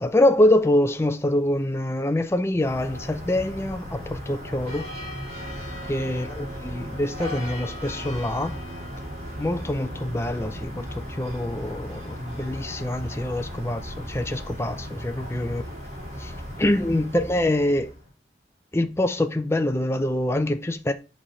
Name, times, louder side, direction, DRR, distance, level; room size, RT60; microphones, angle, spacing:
voice 1, 0.0-4.9 5.9-8.5 9.4-15.6 16.2-16.3 16.6-17.9 18.7-20.9, left 1 dB, 15° left, 0.5 m, -25 dB
sound 1, 2.6-18.1, equal, 40° right, 3.1 m, -36 dB
7.5 x 3.4 x 6.1 m
head